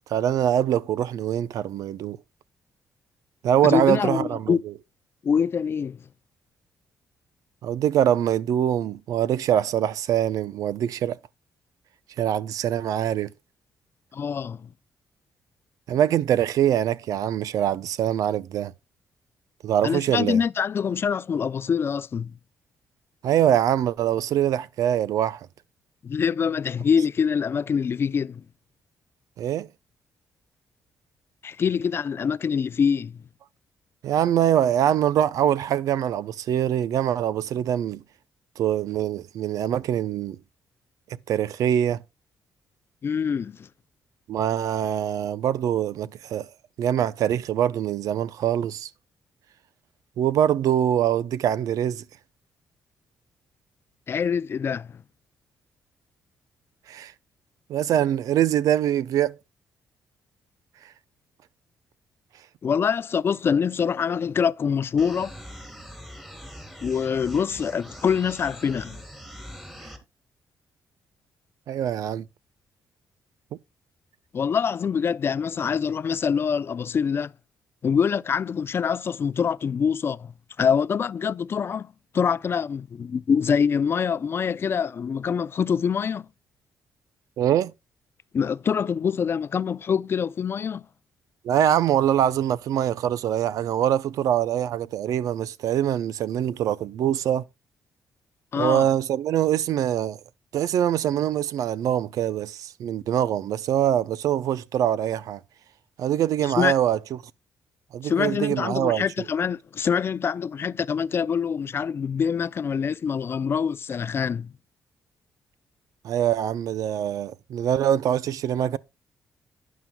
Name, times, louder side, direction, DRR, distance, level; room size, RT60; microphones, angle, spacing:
voice 1, 0.1-2.2 3.4-4.7 7.6-11.2 12.2-13.3 15.9-18.7 19.6-20.4 23.2-25.5 29.4-29.7 34.0-38.0 38.6-40.4 41.1-42.0 44.3-46.5 46.8-48.9 50.2-52.0 56.9-57.1 57.7-59.4 71.7-72.3 87.4-87.7 91.4-97.5 98.6-100.2 100.5-105.4 106.0-107.0 107.9-109.3 116.0-118.8, right 10 dB, 75° right, 0.6 m, -23 dB
voice 2, 3.6-4.6 5.2-6.0 14.1-14.7 19.8-22.3 26.0-28.4 31.4-33.2 43.0-43.7 54.1-55.0 62.6-65.4 66.8-69.0 74.3-77.3 77.8-80.3 80.6-86.3 88.3-90.8 98.5-98.9 106.6-106.8 108.0-114.5, left 6 dB, 40° left, 0.4 m, -25 dB
sound 1, 65.0-70.0, equal, 5° right, 3.1 m, -42 dB
11.5 x 9.4 x 2.2 m
cardioid pair, 100°, 6 cm